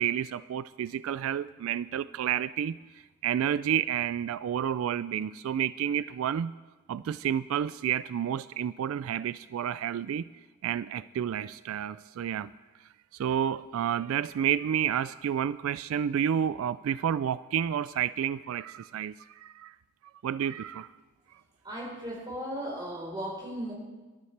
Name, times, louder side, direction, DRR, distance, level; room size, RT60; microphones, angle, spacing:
voice 1, 0.0-2.8 3.2-6.5 6.9-10.2 10.6-12.5 13.1-19.7 20.2-20.9, right 9 dB, 85° right, 16 dB, 0.3 m, -30 dB
voice 2, 21.6-23.7, equal, 20° right, -3 dB, 3.9 m, -36 dB
20.5 x 12.5 x 3.3 m, 1.2 s
head